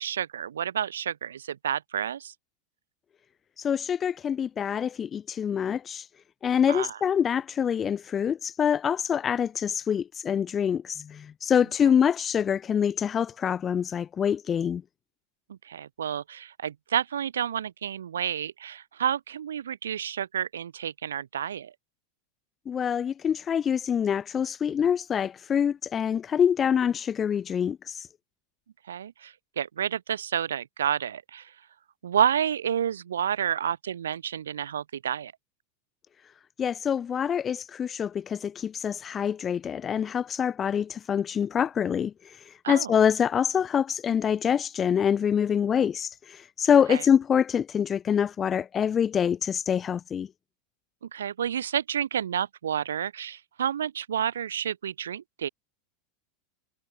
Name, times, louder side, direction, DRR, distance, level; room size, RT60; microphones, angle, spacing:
voice 1, 0.0-2.3 6.7-6.9 15.5-21.7 28.9-31.5 32.0-35.3 42.6-42.9 46.9-47.0 51.1-55.5, right 9 dB, 70° right, 1.0 m, -30 dB
voice 2, 3.6-6.1 6.4-14.8 22.7-28.1 36.6-50.3, left 8 dB, 25° left, 3.4 m, -25 dB
figure-of-eight pair, 85°, 0 cm